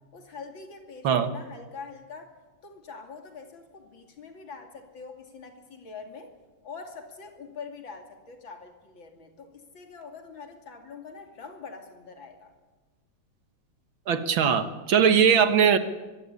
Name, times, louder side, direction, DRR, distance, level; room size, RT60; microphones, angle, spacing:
voice 1, 0.1-2.4 2.6-6.3 6.6-12.5, left 5 dB, 75° left, 5 dB, 3.4 m, -44 dB
voice 2, 14.1-15.8, right 7 dB, 85° right, 10 dB, 2.2 m, -20 dB
23.5 x 16.5 x 10.0 m, 1.2 s
omnidirectional pair, 2.1 m